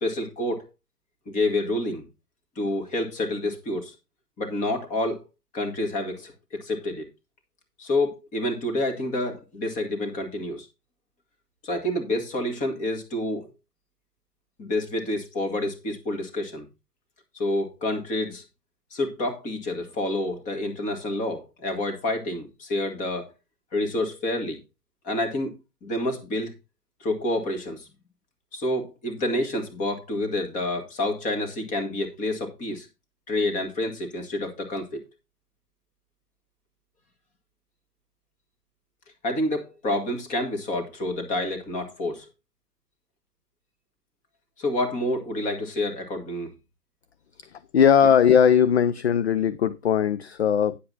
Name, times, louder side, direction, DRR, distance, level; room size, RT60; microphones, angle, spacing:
voice 1, 0.0-0.7 1.3-2.1 2.6-4.0 4.4-5.2 5.5-7.1 7.8-10.7 11.6-13.5 14.6-16.7 17.3-18.4 18.9-23.3 23.7-24.6 25.0-25.5 25.8-26.5 27.0-27.9 28.5-32.9 33.3-35.0 39.2-42.3 44.6-46.5, left 1 dB, 15° left, 1.8 m, -28 dB
voice 2, 47.4-50.8, left 8 dB, 45° left, 0.5 m, -19 dB
10.0 x 7.7 x 4.1 m
figure-of-eight pair, 120°, 49 cm